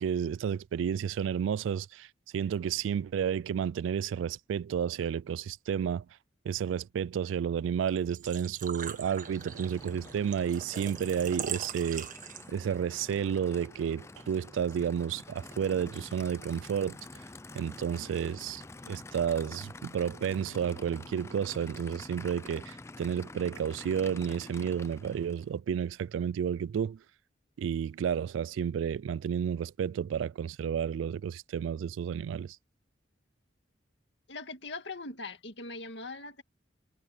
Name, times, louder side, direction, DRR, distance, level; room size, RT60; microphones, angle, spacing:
voice 1, 0.0-2.1 2.3-6.1 6.5-12.1 12.5-17.0 17.5-18.6 18.9-27.0 27.6-32.6, right 8 dB, 90° right, 0.3 m, -31 dB
Engine / Trickle dribble / Fill (with liquid), 7.9-12.7, right 8 dB, 45° right, 1.7 m, -41 dB
Aircraft / Idling, 8.6-25.6, left 2 dB, 15° left, 0.4 m, -48 dB
voice 2, 34.3-36.4, left 3 dB, 65° left, 2.2 m, -41 dB
head